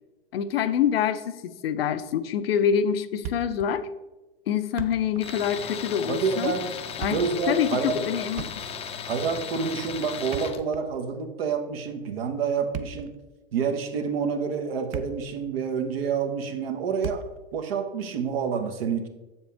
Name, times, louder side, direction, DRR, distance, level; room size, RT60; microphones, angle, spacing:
voice 1, 0.3-3.9 4.5-6.5 7.0-7.2 7.5-8.5, left 8 dB, 70° left, 12 dB, 0.6 m, -26 dB
Thump thud, 3.2-3.8 4.0-4.1 4.6-5.3 5.6-5.8 6.7-7.4 8.3-9.0 10.1-11.1 12.5-13.2 13.9-14.0 14.6-15.4 15.6-15.8 17.0-17.5, right 9 dB, 40° right, 0.6 m, -37 dB
Tools, 5.2-10.6, left 7 dB, 20° left, 0.5 m, -36 dB
voice 2, 6.1-6.7 7.1-8.1 9.0-13.2 13.5-19.1, right 6 dB, 70° right, 7 dB, 1.2 m, -28 dB
7.2 x 7.2 x 3.4 m, 1.1 s
hypercardioid pair, 110°, 31 cm